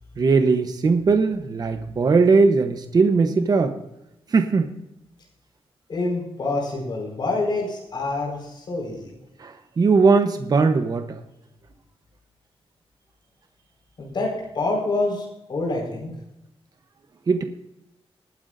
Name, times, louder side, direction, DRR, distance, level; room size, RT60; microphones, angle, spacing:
voice 1, 0.2-3.7 4.3-4.7 9.4-11.2 17.3-17.4, right 4 dB, 40° right, 7 dB, 0.8 m, -19 dB
voice 2, 5.9-9.1 14.0-16.1, left 2 dB, 50° left, -1 dB, 4.6 m, -27 dB
20.0 x 9.5 x 2.6 m, 0.88 s
wide cardioid pair, 170°, 10 cm